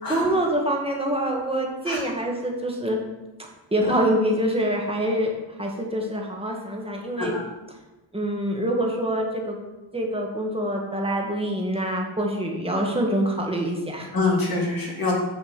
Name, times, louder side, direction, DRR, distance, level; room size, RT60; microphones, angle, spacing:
voice 1, 0.1-3.0 3.7-5.3 5.6-7.4 8.1-9.6 9.9-14.1, right 1 dB, 15° right, 0 dB, 1.7 m, -25 dB
voice 2, 14.1-15.1, left 3 dB, 50° left, -2 dB, 2.7 m, -25 dB
6.8 x 5.3 x 6.7 m, 1.1 s
wide cardioid pair, 100°, 44 cm